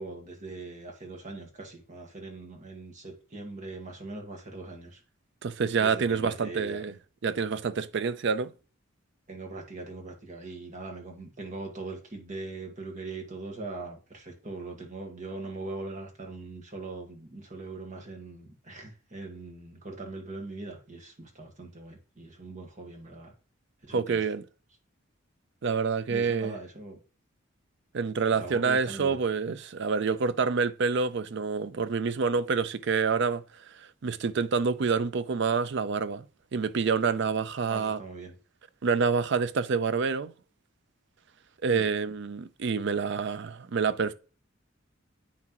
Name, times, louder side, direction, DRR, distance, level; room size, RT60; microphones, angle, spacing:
voice 1, 0.0-5.0 5.8-6.8 9.3-23.3 23.8-24.2 26.1-27.0 28.3-29.2 37.7-38.3 41.7-41.9, right 3 dB, 40° right, 1.5 m, -41 dB
voice 2, 5.4-6.9 7.2-8.5 23.9-24.4 25.6-26.5 27.9-33.4 33.8-36.3 36.5-38.0 38.8-40.3 41.6-44.1, right 5 dB, 60° right, 0.5 m, -27 dB
8.5 x 5.9 x 3.0 m
head